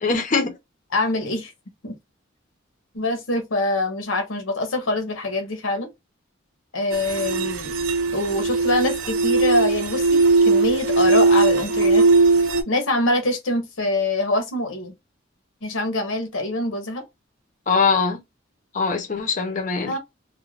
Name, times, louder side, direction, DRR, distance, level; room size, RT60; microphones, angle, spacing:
voice 1, 0.0-0.6 17.7-18.2 18.7-19.9, left 4 dB, 40° left, 0.6 m, -22 dB
voice 2, 0.9-1.5 1.8-2.0 2.9-5.9 6.7-7.7 8.1-12.1 12.7-14.9 15.6-17.0 19.9-20.0, left 2 dB, 80° left, 0.8 m, -24 dB
sound 1, 6.9-12.6, right 3 dB, 75° right, 0.5 m, -19 dB
2.4 x 2.1 x 3.1 m
head